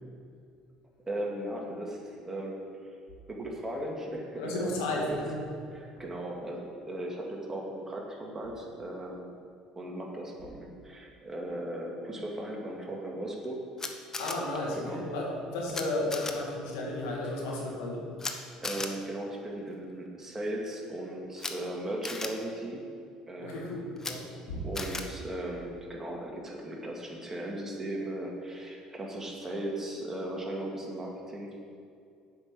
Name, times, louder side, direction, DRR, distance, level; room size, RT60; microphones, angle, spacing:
voice 1, 1.1-2.6 3.3-4.8 5.1-5.2 5.7-9.4 9.8-13.6 14.7-15.0 18.6-22.8 23.3-23.8 24.6-31.6, right 1 dB, 20° right, -1 dB, 2.1 m, -37 dB
voice 2, 4.4-5.4 14.2-18.1 23.4-24.6, left 1 dB, 80° left, -2 dB, 2.1 m, -33 dB
Camera, 13.8-14.3 15.7-15.8 16.1-16.3 18.2-18.3 18.6-18.9 21.4-21.5 22.0-22.3 24.0-24.1 24.8-25.0, left 3 dB, 25° left, 1.0 m, -35 dB
7.9 x 5.7 x 7.5 m, 2.4 s
hypercardioid pair, 75°, 2 cm